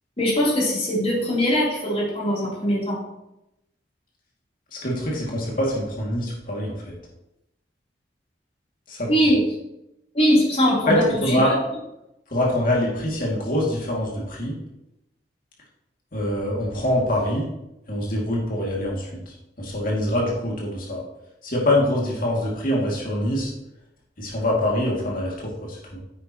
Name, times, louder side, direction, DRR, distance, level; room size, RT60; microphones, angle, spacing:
voice 1, 0.2-3.0 9.1-9.4 10.1-11.5, equal, 35° left, -5 dB, 3.5 m, -21 dB
voice 2, 4.7-6.9 8.9-9.1 10.9-11.5 12.3-14.5 16.1-17.5 17.9-21.0 21.4-23.5 24.2-26.0, left 1 dB, 50° left, -3 dB, 2.5 m, -24 dB
9.9 x 8.7 x 3.1 m, 0.87 s
head